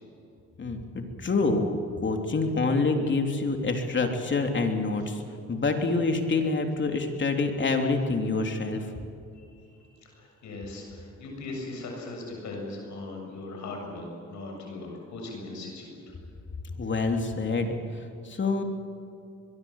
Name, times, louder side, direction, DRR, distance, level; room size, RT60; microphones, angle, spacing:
voice 1, 0.6-5.2 5.5-8.9 16.7-18.6, left 3 dB, 40° left, 4 dB, 3.3 m, -27 dB
voice 2, 10.0-16.1, left 2 dB, 70° left, 0 dB, 7.4 m, -39 dB
23.0 x 22.5 x 7.4 m, 2.7 s
cardioid pair, 90°, 30 cm